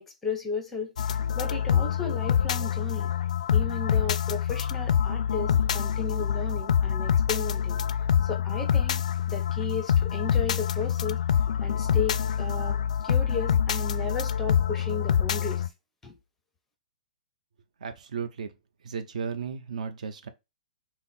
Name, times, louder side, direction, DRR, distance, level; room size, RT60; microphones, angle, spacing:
voice 1, 0.0-3.1 3.5-7.8 8.2-11.2 11.6-12.8 13.0-15.7 16.0-16.2, left 4 dB, 5° left, 0.5 m, -35 dB
sound 1, 1.0-15.7, left 8 dB, 60° left, 0.3 m, -26 dB
voice 2, 17.8-18.5 18.8-20.3, right 6 dB, 60° right, 0.7 m, -34 dB
5.7 x 2.1 x 4.1 m
hypercardioid pair, 180°, 4 cm